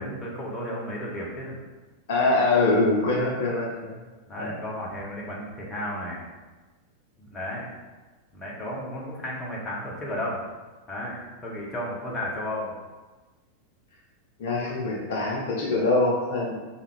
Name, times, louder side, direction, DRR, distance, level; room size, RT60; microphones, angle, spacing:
voice 1, 0.0-1.6 3.0-3.1 4.3-6.2 7.3-7.8 8.3-10.4 10.9-12.7, left 1 dB, 20° left, -4 dB, 0.9 m, -33 dB
voice 2, 2.1-3.9 4.3-4.6 14.4-16.5, left 2 dB, 55° left, -3 dB, 0.6 m, -24 dB
3.4 x 2.3 x 3.5 m, 1.2 s
figure-of-eight pair, 90°, 0 cm